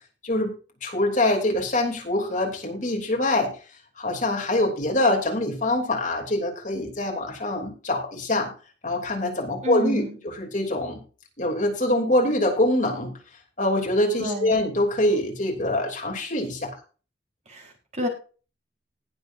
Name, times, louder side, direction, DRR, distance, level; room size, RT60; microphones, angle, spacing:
voice 1, 0.8-3.5 4.0-8.5 8.8-11.0 11.4-13.1 13.6-16.7, left 1 dB, 45° left, 2 dB, 3.1 m, -24 dB
voice 2, 9.6-10.2 14.2-14.6 17.5-18.1, left 1 dB, 40° right, 1 dB, 4.2 m, -30 dB
20.0 x 6.9 x 2.7 m, 0.35 s
head